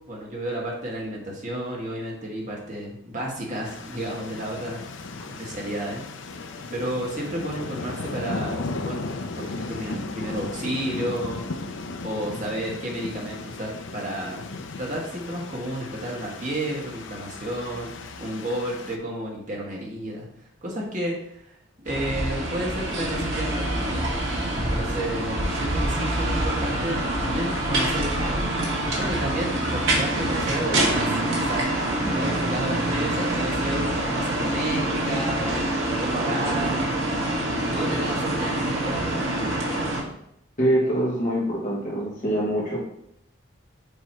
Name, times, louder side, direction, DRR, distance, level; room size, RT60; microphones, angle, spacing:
voice 1, 0.1-4.8 5.4-6.0 6.7-9.1 9.3-11.5 12.0-14.4 14.8-17.9 18.2-20.3 20.6-21.4 21.8-24.1 24.5-28.6 28.9-35.5 36.0-36.8 37.3-39.3, right 1 dB, 40° right, -2 dB, 1.5 m, -31 dB
sound 1, 3.6-19.0, left 3 dB, 75° left, 0.6 m, -36 dB
sound 2, 21.9-40.0, right 1 dB, 80° right, 1.5 m, -26 dB
voice 2, 40.6-42.8, right 1 dB, 40° left, -6 dB, 1.5 m, -24 dB
6.9 x 3.1 x 4.4 m, 0.75 s
head